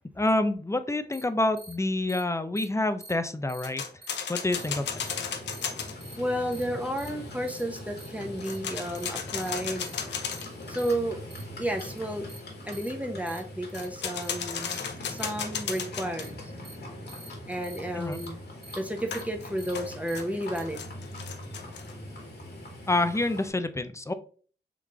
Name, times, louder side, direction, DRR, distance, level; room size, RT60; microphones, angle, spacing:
voice 1, 0.2-3.8 4.3-4.9 18.0-18.2 22.9-24.1, left 2 dB, 15° left, 10 dB, 0.5 m, -27 dB
sound 1, 1.1-1.2 1.6-1.7 2.1-2.2 2.6-2.7 3.0-3.1 3.5-3.7 4.0-4.1 4.5-4.7 5.0-5.1 5.5-5.7 6.0-6.1 6.5-6.6 7.0-7.1 7.5-7.6 8.0-8.1 8.4-8.6 8.9-9.1 9.4-9.5 9.8-9.9 10.3-10.4 10.8-10.9 11.3-11.4 11.8-11.9 12.3-12.4 12.7-12.9 13.3-13.4 13.7-13.9 14.2-14.3 14.7-14.8 15.2-15.3 15.7-15.8 16.2-16.3 16.6-16.7 17.1-17.3 17.6-17.8 18.1-18.2 18.6-18.8 19.1-19.2 19.6-19.7 20.1-20.2 20.5-20.6, right 2 dB, 65° right, 1.5 m, -46 dB
sound 2, 3.6-5.9 8.4-10.7 13.7-16.3 19.1-21.9, left 7 dB, 90° left, 0.6 m, -35 dB
Livestock farm animals working animals, 4.5-23.5, left 1 dB, 70° left, 1.5 m, -42 dB
voice 2, 6.2-9.9 10.7-11.2 11.6-12.3 12.7-14.8 15.1-16.5 17.5-18.4 18.7-20.9, right 1 dB, 10° right, 3 dB, 0.9 m, -32 dB
3.7 x 3.1 x 3.7 m, 0.42 s
cardioid pair, 55°, 18 cm